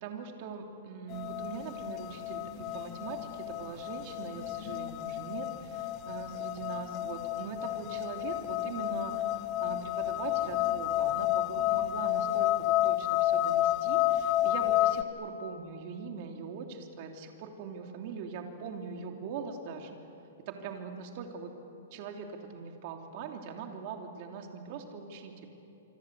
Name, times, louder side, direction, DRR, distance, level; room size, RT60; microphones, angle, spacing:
voice 1, 0.0-19.9 20.5-21.5 21.9-22.3 22.5-25.5, right 5 dB, 40° right, 3 dB, 2.9 m, -41 dB
sound 1, 1.1-15.0, left 14 dB, 25° left, 0.8 m, -31 dB
27.0 x 25.0 x 8.2 m, 2.8 s
hypercardioid pair, 160°, 0 cm